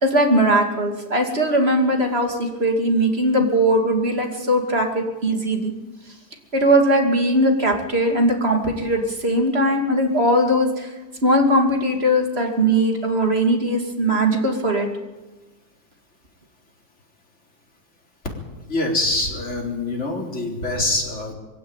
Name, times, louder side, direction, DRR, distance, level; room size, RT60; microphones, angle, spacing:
voice 1, 0.0-5.7 6.5-10.9 11.2-14.9, right 1 dB, 30° right, 3 dB, 2.9 m, -19 dB
voice 2, 18.7-21.3, left 2 dB, 35° left, 0 dB, 4.4 m, -24 dB
22.5 x 16.5 x 9.0 m, 1.2 s
omnidirectional pair, 2.1 m